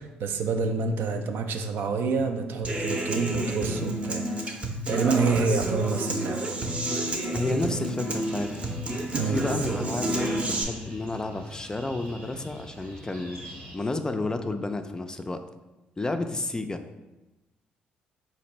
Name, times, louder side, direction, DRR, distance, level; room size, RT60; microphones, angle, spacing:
voice 1, 0.0-4.6 4.9-6.5 9.1-9.4, right 4 dB, 65° right, 6 dB, 0.4 m, -28 dB
Human voice / Acoustic guitar, 2.6-10.6, right 1 dB, 30° right, 0.6 m, -30 dB
Screaming, 4.9-5.5 6.9-7.2, left 1 dB, 5° left, 0.7 m, -36 dB
voice 2, 7.3-8.6 8.9-13.4 13.7-15.4 16.0-16.8, left 2 dB, 20° left, 7 dB, 0.3 m, -31 dB
sound 1, 8.1-13.8, equal, 90° right, 1.0 m, -45 dB
4.1 x 2.6 x 3.0 m, 1.1 s
hypercardioid pair, 60°, 4 cm